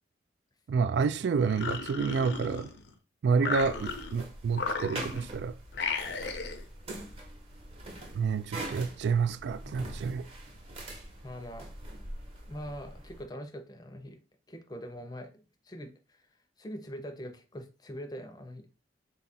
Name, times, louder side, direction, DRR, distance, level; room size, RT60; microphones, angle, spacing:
voice 1, 0.7-2.7 3.2-5.6 8.1-10.3, right 5 dB, 75° right, 0.3 m, -29 dB
sound 1, 1.4-2.9 3.4-4.2 4.5-5.3 5.7-6.6, left 4 dB, 75° left, 0.6 m, -35 dB
sound 2, 3.5-13.2, right 1 dB, 35° right, 0.9 m, -43 dB
voice 2, 11.2-11.7 12.5-14.2 14.5-16.2 16.6-18.7, equal, 20° left, 0.5 m, -43 dB
3.9 x 2.4 x 4.1 m
head